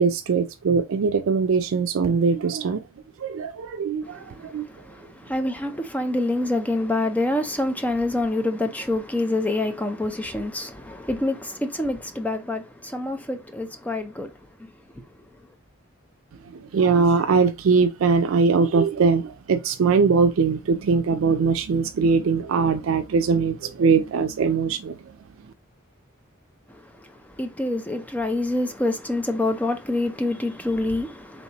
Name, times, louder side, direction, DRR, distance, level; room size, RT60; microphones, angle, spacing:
voice 1, 0.0-2.8 3.2-4.7 16.5-25.0, right 5 dB, 80° right, 0.4 m, -21 dB
voice 2, 4.0-14.4 15.0-15.1 26.7-31.4, left 2 dB, 10° left, 0.5 m, -27 dB
4.2 x 3.4 x 2.9 m
head